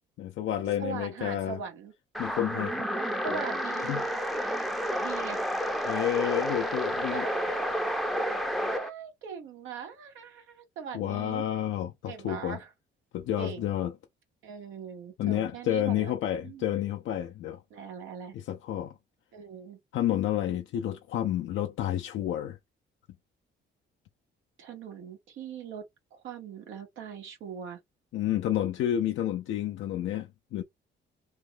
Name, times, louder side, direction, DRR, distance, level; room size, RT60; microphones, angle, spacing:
voice 1, 0.2-1.6 2.2-2.8 3.9-4.1 5.8-7.3 10.9-12.6 13.1-13.9 15.2-17.6 18.3-18.9 19.9-22.6 28.1-30.6, left 11 dB, 75° left, 0.6 m, -30 dB
voice 2, 0.8-1.9 3.2-4.0 5.0-5.4 7.1-11.4 12.0-12.7 13.4-13.7 14.4-16.1 16.4-16.8 17.7-18.3 19.3-19.8 24.6-25.8 26.1-27.8, right 7 dB, 85° right, 1.6 m, -41 dB
sound 1, 2.1-8.9, equal, ahead, 0.6 m, -30 dB
3.2 x 2.6 x 3.5 m
cardioid pair, 90°, 20 cm